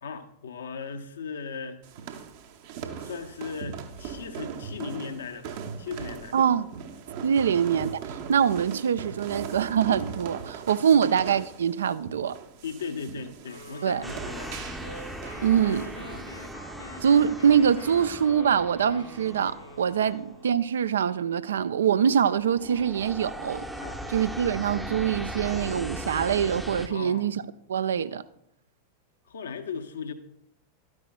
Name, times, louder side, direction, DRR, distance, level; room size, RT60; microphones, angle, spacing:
voice 1, 0.0-1.8 3.0-6.4 7.4-7.5 10.9-11.1 12.6-14.7 20.0-20.2 23.8-24.1 26.9-27.3 29.3-30.1, left 6 dB, 65° left, 0.7 m, -37 dB
sound 1, 1.8-16.5, right 7 dB, 50° right, 0.7 m, -40 dB
voice 2, 6.3-6.7 7.2-12.4 13.8-14.0 15.4-15.9 17.0-23.6 24.1-27.4 27.7-28.2, right 8 dB, 65° right, 0.3 m, -24 dB
sound 2, 13.5-20.6, equal, 90° left, 2.4 m, -44 dB
sound 3, 14.0-20.9 21.4-21.7 22.0-26.9, right 1 dB, 5° right, 0.6 m, -39 dB
12.5 x 9.5 x 2.2 m
figure-of-eight pair, 90°, 0 cm